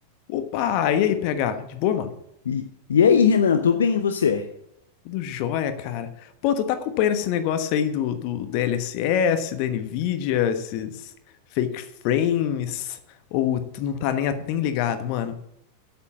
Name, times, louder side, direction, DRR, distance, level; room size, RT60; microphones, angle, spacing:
voice 1, 0.3-2.1 5.0-11.1 11.5-13.0 13.3-15.3, left 9 dB, 45° left, 10 dB, 1.2 m, -25 dB
voice 2, 2.4-4.5, left 6 dB, 65° left, 7 dB, 0.7 m, -19 dB
8.4 x 7.6 x 7.2 m, 0.81 s
figure-of-eight pair, 90°, 0 cm